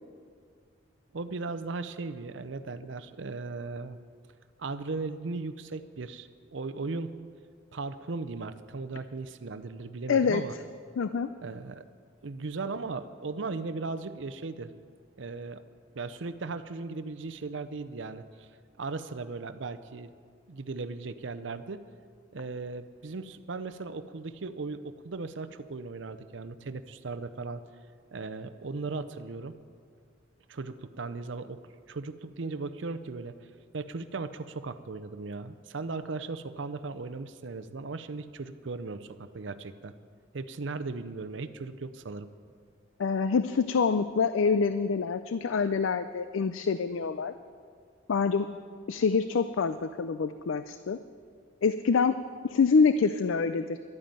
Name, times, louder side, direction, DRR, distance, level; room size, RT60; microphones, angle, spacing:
voice 1, 1.1-4.0 4.6-7.2 7.7-10.5 11.4-11.8 12.2-14.7 15.2-15.6 15.9-18.5 18.8-20.1 20.5-21.8 22.3-27.6 28.1-29.5 30.5-31.6 31.9-33.3 33.7-39.9 40.3-42.3, right 3 dB, 65° right, 11 dB, 0.6 m, -37 dB
voice 2, 10.1-10.4 11.0-11.3 43.0-47.3 48.1-48.5 48.9-51.0 51.6-53.8, left 5 dB, 80° left, 12 dB, 0.4 m, -26 dB
12.0 x 9.3 x 8.9 m, 2.1 s
head